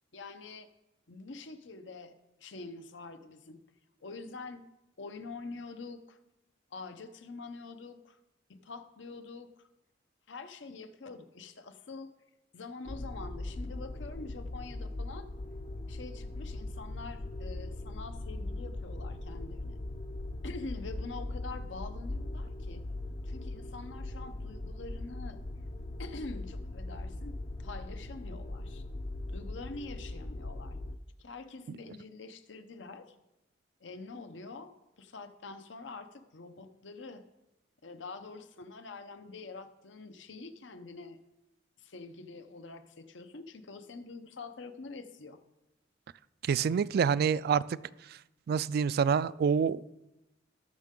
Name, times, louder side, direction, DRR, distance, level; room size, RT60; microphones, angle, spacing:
voice 1, 0.1-0.7 1.1-3.6 4.0-4.6 5.0-6.2 6.7-8.2 8.5-9.7 10.3-12.1 12.5-15.3 15.9-19.8 20.4-22.8 23.2-25.4 26.0-28.8 29.3-30.8 31.2-33.2 33.8-37.2 37.8-41.2 41.8-45.4, left 3 dB, 80° left, 9 dB, 0.8 m, -45 dB
sound 1, 12.9-31.0, left 2 dB, 35° left, 0.5 m, -40 dB
voice 2, 46.5-47.6 48.5-49.8, right 6 dB, 55° right, 18 dB, 0.3 m, -26 dB
18.5 x 6.4 x 3.7 m, 0.93 s
head